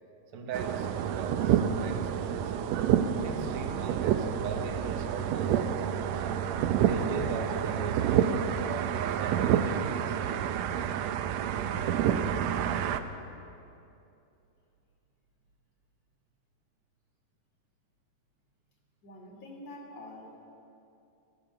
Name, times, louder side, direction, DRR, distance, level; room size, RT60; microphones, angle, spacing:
voice 1, 0.3-2.7 3.2-6.4 6.8-8.8 9.1-10.3, right 5 dB, 55° right, 4 dB, 1.9 m, -39 dB
sound 1, 0.5-13.0, right 9 dB, 75° right, 1.7 m, -28 dB
voice 2, 19.0-20.4, left 1 dB, 55° left, -2 dB, 3.8 m, -46 dB
16.0 x 13.5 x 6.7 m, 2.6 s
omnidirectional pair, 3.5 m